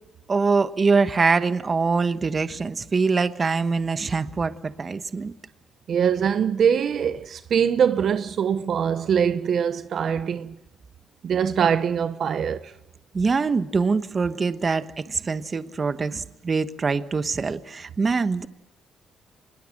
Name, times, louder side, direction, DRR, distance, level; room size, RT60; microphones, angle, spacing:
voice 1, 0.3-5.3 13.1-18.5, right 4 dB, 35° right, 1.2 m, -24 dB
voice 2, 5.9-10.5 11.2-12.7, right 7 dB, 60° right, 0.9 m, -23 dB
25.5 x 21.0 x 7.4 m
cardioid pair, 90°, 0 cm